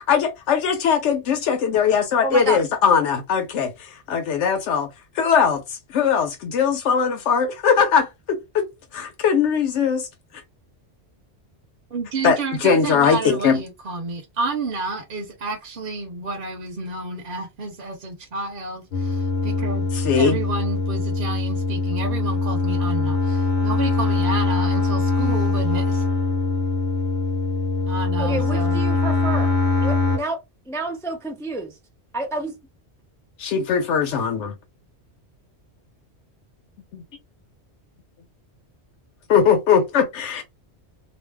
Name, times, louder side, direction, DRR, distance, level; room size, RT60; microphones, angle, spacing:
voice 1, 0.0-4.9 5.1-8.7 8.9-10.1 12.2-13.6 19.9-20.4 33.4-34.5 36.9-37.0 39.3-40.4, left 6 dB, 85° left, 0.9 m, -20 dB
voice 2, 2.2-2.6 28.2-30.4 30.7-31.7 32.1-32.5, right 2 dB, 5° left, 0.4 m, -29 dB
voice 3, 11.9-19.9 20.2-26.0 27.9-28.8, right 3 dB, 55° right, 0.9 m, -30 dB
sound 1, 18.9-30.2, left 3 dB, 60° left, 1.0 m, -22 dB
2.6 x 2.1 x 3.3 m
omnidirectional pair, 1.2 m